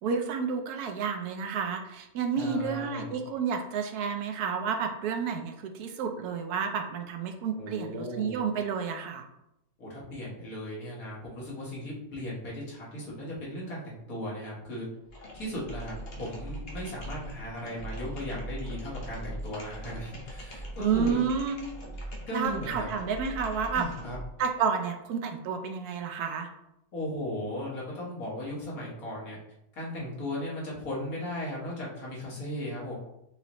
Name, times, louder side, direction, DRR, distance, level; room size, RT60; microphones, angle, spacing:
voice 1, 0.0-9.3 20.8-21.6 22.3-23.9 24.4-26.5, right 6 dB, 80° right, 5 dB, 1.1 m, -30 dB
voice 2, 2.4-3.2 7.6-8.4 9.8-14.8 15.3-21.2 22.2-22.9 23.7-24.2 26.9-29.4 29.7-33.0, left 1 dB, 65° left, -5 dB, 1.9 m, -37 dB
sound 1, 15.0-24.4, equal, 45° left, 1.0 m, -40 dB
5.6 x 2.9 x 3.0 m, 0.84 s
omnidirectional pair, 1.6 m